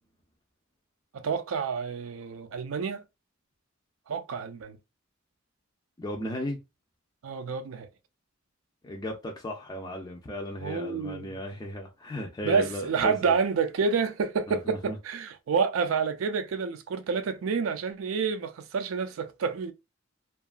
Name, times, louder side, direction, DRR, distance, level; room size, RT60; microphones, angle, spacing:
voice 1, 1.1-3.0 4.1-4.8 7.2-7.9 10.6-11.4 12.4-19.7, right 5 dB, 75° right, 0.4 m, -29 dB
voice 2, 6.0-6.6 8.8-13.4 14.5-14.9, left 1 dB, 20° left, 0.4 m, -35 dB
2.8 x 2.3 x 2.4 m
head